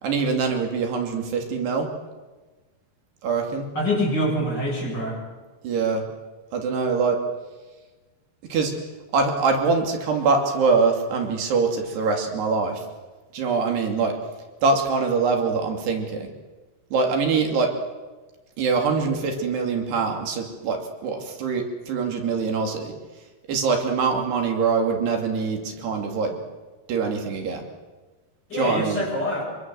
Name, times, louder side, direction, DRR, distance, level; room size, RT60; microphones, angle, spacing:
voice 1, 0.0-1.9 3.2-3.7 5.6-6.1 6.5-7.2 8.5-8.7 9.1-12.8 13.3-14.2 14.6-16.3 16.9-17.7 18.6-22.9 23.5-26.4 26.9-27.6 28.5-29.1, right 4 dB, 80° right, 3 dB, 4.9 m, -23 dB
voice 2, 3.7-5.2 28.5-29.4, equal, 25° left, -2 dB, 8.4 m, -25 dB
25.0 x 24.5 x 7.8 m, 1.2 s
omnidirectional pair, 4.6 m